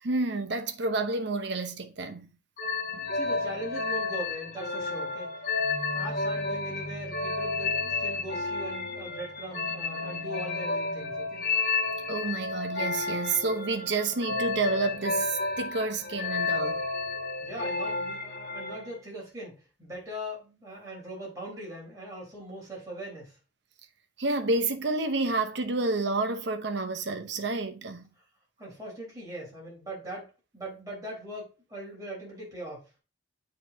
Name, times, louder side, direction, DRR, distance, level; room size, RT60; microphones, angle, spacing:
voice 1, 0.0-2.4 2.9-3.1 12.1-16.8 24.2-28.1, right 3 dB, 60° right, 0.8 m, -29 dB
sound 1, 2.6-19.0, left 3 dB, 45° left, 2.2 m, -31 dB
voice 2, 3.1-5.3 5.9-11.4 17.4-23.4 28.6-32.8, right 1 dB, 15° right, 3.9 m, -40 dB
8.1 x 4.3 x 2.7 m
head